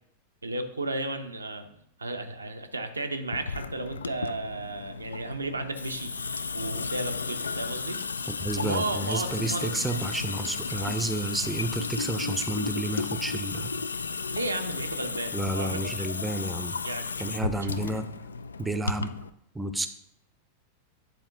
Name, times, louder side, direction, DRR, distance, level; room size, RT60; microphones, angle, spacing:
voice 1, 0.4-6.2 6.5-8.0 8.6-9.7 14.3-16.1 16.8-17.1 17.5-17.7, right 2 dB, 80° right, 6 dB, 0.6 m, -33 dB
Water tap faucet / Sink (filling or washing) / Drip, 3.3-19.3, left 4 dB, 75° left, 0.3 m, -34 dB
voice 2, 8.3-13.8 15.3-16.8 17.2-18.1 18.6-19.1 19.5-19.9, right 1 dB, 5° right, 9 dB, 0.6 m, -31 dB
9.2 x 4.3 x 3.8 m, 0.74 s
figure-of-eight pair, 90°, 0 cm